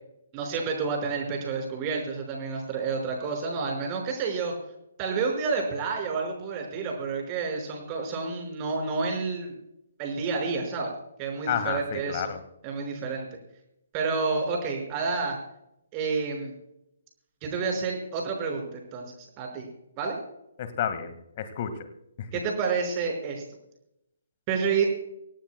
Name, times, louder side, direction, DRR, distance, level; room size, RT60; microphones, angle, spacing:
voice 1, 0.3-4.5 5.0-9.5 10.0-10.9 11.2-12.3 12.6-13.3 13.9-15.4 15.9-16.5 17.4-19.7 20.0-20.2 22.3-23.4 24.5-24.8, right 4 dB, 25° right, 2 dB, 5.6 m, -29 dB
voice 2, 11.5-12.4 20.6-21.9 22.2-22.3, left 8 dB, 40° left, 11 dB, 1.9 m, -31 dB
25.5 x 17.5 x 2.3 m, 0.82 s
figure-of-eight pair, 135°, 0 cm